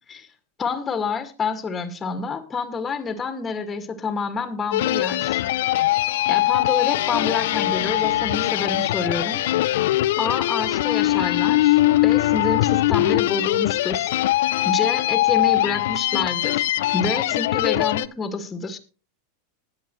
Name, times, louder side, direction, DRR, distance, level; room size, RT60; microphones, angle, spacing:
voice 1, 0.6-5.4 6.3-9.4 10.2-14.1 14.6-18.8, left 4 dB, 25° left, 7 dB, 2.1 m, -28 dB
sound 1, 4.7-18.1, left 15 dB, 65° left, 0.5 m, -21 dB
20.5 x 7.6 x 3.2 m, 0.35 s
hypercardioid pair, 95°, 0 cm